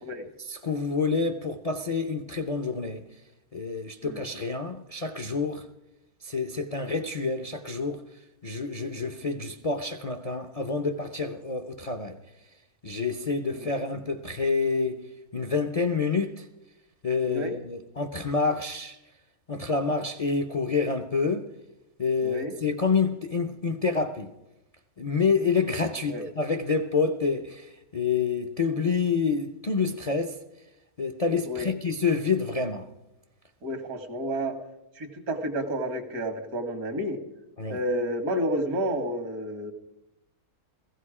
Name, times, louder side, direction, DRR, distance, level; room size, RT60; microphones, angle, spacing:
voice 1, 0.4-3.0 3.5-5.6 6.2-8.0 8.4-12.2 12.8-15.0 15.3-16.5 17.0-19.0 19.5-21.5 22.0-24.3 25.0-30.4 31.0-32.9 37.6-37.8, left 4 dB, 45° left, 0.4 m, -28 dB
voice 2, 22.2-22.5 26.1-26.2 31.5-31.7 33.6-34.6 35.0-37.2 37.7-39.7, equal, 75° right, 1.9 m, -30 dB
15.5 x 15.5 x 4.9 m
omnidirectional pair, 1.6 m